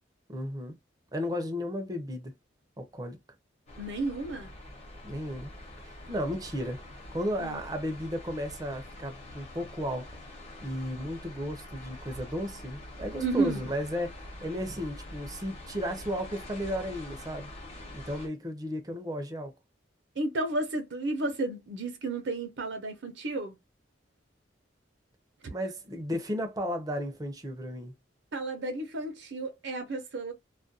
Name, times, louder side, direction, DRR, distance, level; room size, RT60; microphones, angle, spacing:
voice 1, 0.3-0.7 1.1-2.3 2.8-3.2 5.0-5.5 5.8-6.8 7.1-10.2 10.6-17.5 17.9-19.5 25.5-27.9, equal, 20° right, 0.5 m, -34 dB
sound 1, 3.7-18.3, left 1 dB, 35° left, 0.9 m, -45 dB
voice 2, 3.8-4.5 7.4-7.6 13.2-13.6 20.2-23.6 28.3-30.3, right 2 dB, 65° right, 0.6 m, -32 dB
2.3 x 2.1 x 2.6 m
head